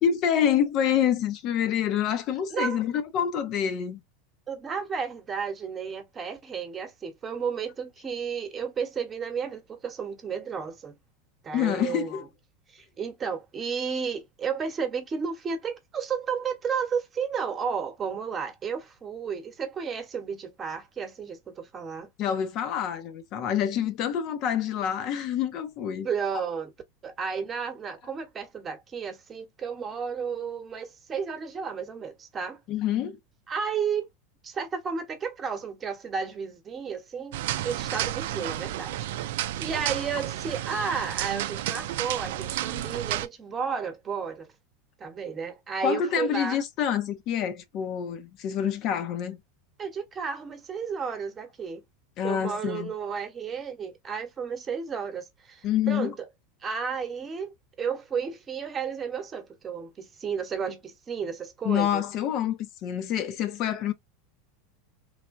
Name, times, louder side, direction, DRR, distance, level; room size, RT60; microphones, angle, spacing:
voice 1, 0.0-4.0 11.5-12.2 22.2-26.1 32.7-33.2 45.8-49.4 52.2-52.9 55.6-56.1 61.6-63.9, left 9 dB, 50° left, 0.6 m, -27 dB
voice 2, 4.5-11.0 11.4-12.1 12.7-22.1 26.0-26.7 27.0-32.6 33.5-34.1 34.4-44.5 45.0-46.6 49.8-51.8 52.2-56.1 56.6-62.0, right 6 dB, 25° right, 0.9 m, -33 dB
sound 1, 37.3-43.3, right 13 dB, 75° right, 0.4 m, -31 dB
3.2 x 2.1 x 2.5 m
hypercardioid pair, 110°, 0 cm